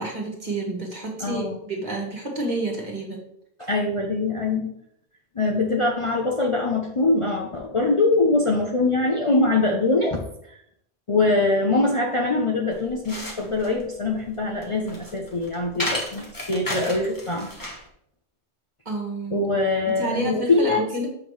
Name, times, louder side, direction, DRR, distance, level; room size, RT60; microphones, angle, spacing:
voice 1, 0.0-3.2 18.9-19.4 19.9-21.1, right 2 dB, 40° right, 0 dB, 1.7 m, -29 dB
voice 2, 1.2-1.6 3.6-4.7 5.4-10.2 10.5-10.6 11.1-17.5 19.3-20.9, left 2 dB, 35° left, 0 dB, 0.7 m, -23 dB
sound 1, 12.7-17.9, left 1 dB, 20° left, 1.3 m, -33 dB
7.3 x 5.7 x 3.2 m, 0.73 s
omnidirectional pair, 1.1 m